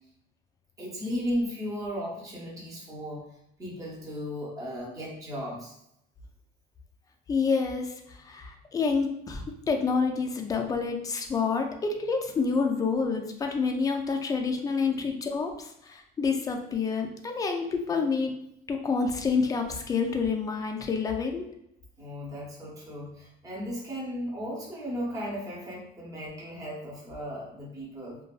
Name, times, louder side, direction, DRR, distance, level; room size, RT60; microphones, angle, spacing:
voice 1, 0.8-3.2 3.6-5.7 14.9-15.2 22.0-28.2, equal, 15° right, -5 dB, 0.7 m, -35 dB
voice 2, 7.3-7.9 8.3-15.5 15.9-18.3 18.7-21.5, left 5 dB, 20° left, 4 dB, 0.3 m, -28 dB
2.5 x 2.2 x 2.3 m, 0.78 s
cardioid pair, 120°, 20 cm